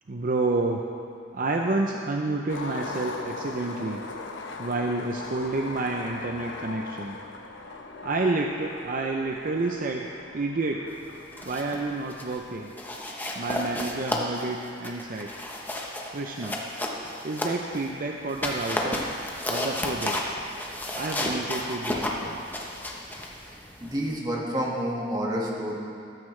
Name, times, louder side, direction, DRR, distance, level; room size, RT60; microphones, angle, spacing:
voice 1, 0.1-0.8 1.3-4.0 4.6-7.2 8.0-10.1 10.3-10.9 11.4-12.7 13.3-15.3 16.1-16.6 17.2-19.0 19.4-20.2 20.9-22.4, right 2 dB, 45° right, 2 dB, 0.6 m, -29 dB
Skateboard, 2.5-12.6, left 3 dB, 80° left, 0.9 m, -40 dB
sound 1, 11.1-11.8 12.1-12.4 12.8-17.9 18.3-24.2, left 1 dB, 10° left, 1.0 m, -32 dB
voice 2, 23.8-25.8, equal, 20° right, -3 dB, 1.7 m, -29 dB
14.5 x 13.0 x 3.3 m, 2.6 s
head